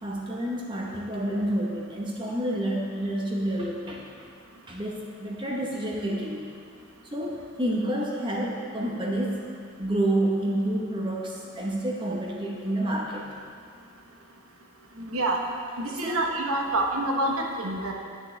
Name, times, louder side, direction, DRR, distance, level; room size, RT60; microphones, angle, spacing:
voice 1, 0.0-4.0 4.7-6.6 7.1-9.5 9.8-13.3 15.9-16.3, right 1 dB, 20° right, -2 dB, 1.0 m, -29 dB
voice 2, 15.0-15.4 15.8-17.9, right 2 dB, 80° right, 0 dB, 1.0 m, -27 dB
11.5 x 6.6 x 3.3 m, 2.3 s
head